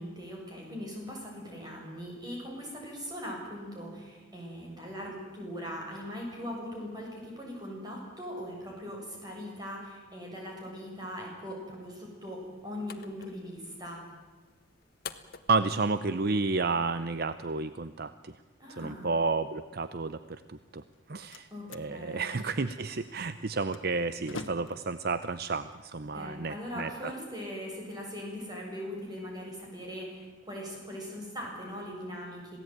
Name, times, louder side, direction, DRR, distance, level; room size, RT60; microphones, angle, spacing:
voice 1, 0.0-14.0 18.6-19.1 21.5-22.4 26.1-32.6, equal, 20° right, -1 dB, 7.9 m, -40 dB
sound 1, 12.2-17.2, left 8 dB, 50° left, 1.3 m, -50 dB
voice 2, 15.5-18.4 18.8-20.8 21.1-27.1, right 3 dB, 55° right, 13 dB, 0.7 m, -31 dB
Slam, 20.7-26.7, left 3 dB, 85° left, 1.4 m, -48 dB
27.0 x 17.5 x 9.4 m, 1.3 s
head